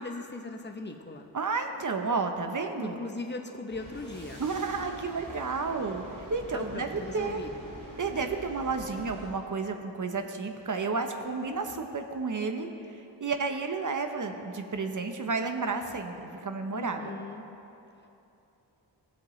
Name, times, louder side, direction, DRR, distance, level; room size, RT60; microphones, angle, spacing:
voice 1, 0.0-1.3 2.8-4.4 6.5-7.5 16.7-17.5, left 3 dB, 25° left, 4 dB, 0.7 m, -39 dB
voice 2, 1.3-3.0 4.4-6.0 6.3-7.4 8.0-12.7 13.2-17.1, right 4 dB, 45° right, 6 dB, 0.8 m, -31 dB
sound 1, 3.7-9.3, right 1 dB, 85° right, 2.5 m, -46 dB
16.0 x 7.7 x 3.2 m, 2.9 s
wide cardioid pair, 90°, 44 cm